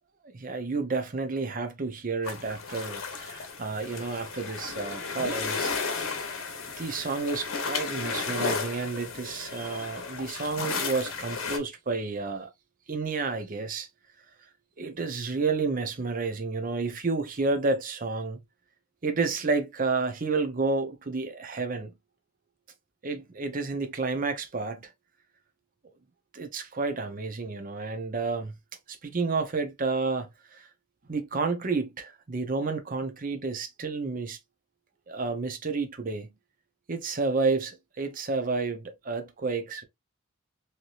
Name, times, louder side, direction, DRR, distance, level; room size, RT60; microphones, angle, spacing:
voice 1, 0.2-5.7 6.8-12.5 12.9-13.9 14.8-18.4 19.0-21.9 23.0-24.9 26.3-28.5 28.9-30.7 31.1-34.4 35.1-36.3 36.9-39.8, right 4 dB, 40° right, 0.6 m, -30 dB
sound 1, 2.2-11.6, left 4 dB, 75° left, 0.9 m, -34 dB
3.2 x 2.8 x 2.4 m
head